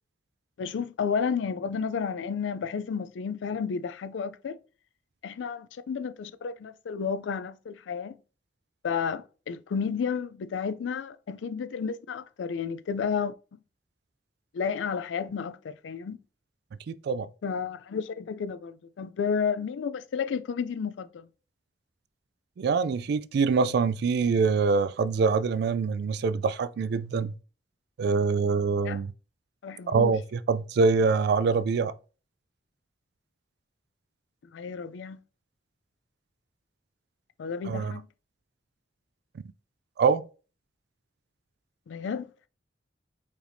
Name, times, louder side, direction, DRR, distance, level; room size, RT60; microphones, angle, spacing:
voice 1, 0.6-4.6 5.2-8.2 8.8-13.3 14.5-16.2 17.4-21.3 28.8-29.0 29.6-30.2 34.5-35.2 37.4-38.1 41.9-42.3, left 6 dB, 90° left, 0.4 m, -32 dB
voice 2, 16.9-17.3 22.6-27.3 28.0-29.1 29.9-31.9 37.7-38.0 40.0-40.2, right 4 dB, 65° right, 0.3 m, -25 dB
4.9 x 2.6 x 3.3 m
head